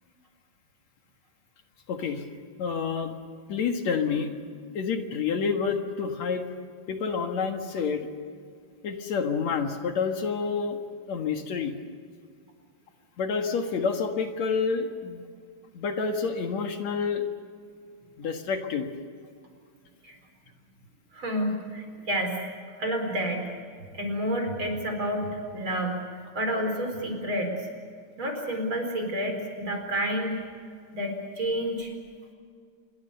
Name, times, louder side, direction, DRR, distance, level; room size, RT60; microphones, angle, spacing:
voice 1, 1.9-2.2 2.6-3.1 3.5-4.3 4.7-6.4 6.9-8.1 8.8-10.8 11.1-11.7 13.2-15.2 15.7-17.2 18.2-18.9, left 5 dB, 70° left, 5 dB, 2.9 m, -28 dB
voice 2, 21.1-22.3 22.8-23.5 23.9-26.0 26.4-27.5 28.2-30.4 30.9-31.9, equal, 40° right, 3 dB, 5.2 m, -29 dB
27.5 x 23.0 x 6.9 m, 2.1 s
omnidirectional pair, 3.4 m